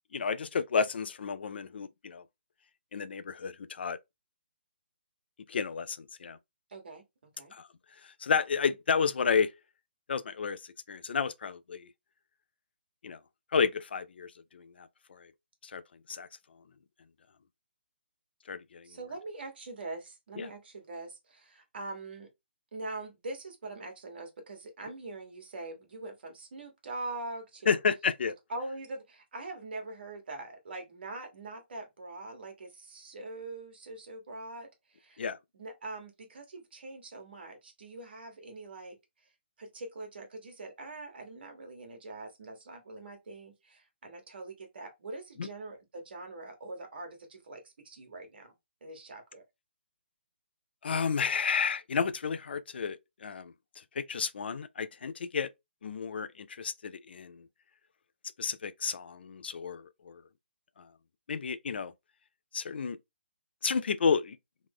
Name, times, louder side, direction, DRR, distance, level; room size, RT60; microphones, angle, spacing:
voice 1, 0.1-2.2 2.9-4.0 5.5-6.4 7.5-7.7 8.2-9.5 10.1-10.6 10.9-11.9 13.0-13.2 13.5-15.3 15.7-15.8 16.1-16.3 18.5-18.9 20.4-20.5 27.7-28.3 35.2-35.4 45.4-45.5 50.8-53.5 54.0-55.5 55.8-57.4 58.4-60.2 60.8-60.9 61.3-61.9 62.5-63.0 63.6-64.4, left 6 dB, 65° left, 0.4 m, -31 dB
voice 2, 6.7-7.0 7.4-7.5 18.8-22.3 22.7-27.8 28.5-35.2 35.5-39.0 39.6-48.5 48.8-49.4, right 2 dB, 65° right, 1.3 m, -43 dB
3.1 x 2.1 x 3.5 m
hypercardioid pair, 150°, 6 cm